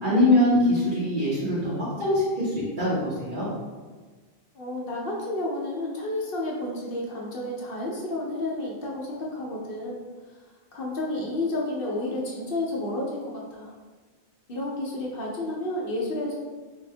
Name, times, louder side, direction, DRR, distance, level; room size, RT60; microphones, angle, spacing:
voice 1, 0.0-3.5, left 1 dB, 50° right, -13 dB, 1.3 m, -23 dB
voice 2, 4.5-10.0 10.7-13.2 13.5-13.7 14.5-16.4, left 1 dB, 60° left, -3 dB, 0.9 m, -31 dB
3.5 x 2.6 x 3.3 m, 1.4 s
omnidirectional pair, 1.1 m